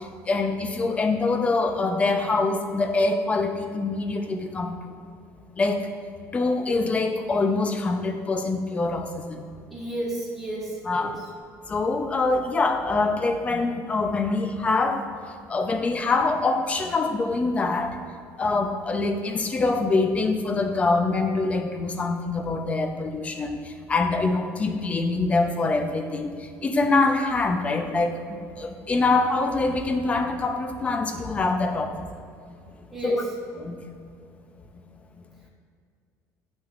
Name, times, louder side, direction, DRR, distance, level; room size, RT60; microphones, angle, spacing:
voice 1, 0.3-4.9 5.6-5.8 6.3-9.4 10.9-11.1 11.7-15.0 15.5-17.9 18.4-23.6 23.9-26.3 26.6-28.1 28.6-32.0 33.0-33.2 33.6-33.8, left 3 dB, 20° left, 6 dB, 0.6 m, -24 dB
voice 2, 9.7-11.3 32.9-33.2, right 1 dB, ahead, -7 dB, 1.5 m, -32 dB
10.0 x 6.2 x 2.5 m, 2.3 s
cardioid pair, 150°, 6 cm